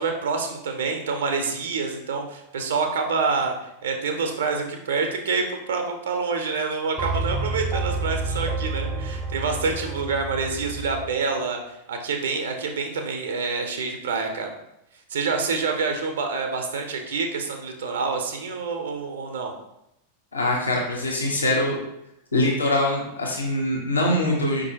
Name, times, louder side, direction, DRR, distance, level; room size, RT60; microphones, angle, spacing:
voice 1, 0.0-14.5 15.1-19.5, right 4 dB, 65° right, 4 dB, 0.5 m, -27 dB
sound 1, 7.0-11.2, right 3 dB, 10° right, 0.4 m, -29 dB
voice 2, 20.3-21.8 22.3-24.7, left 1 dB, 75° left, -2 dB, 0.8 m, -23 dB
4.7 x 2.5 x 2.7 m, 0.83 s
figure-of-eight pair, 90°, 0 cm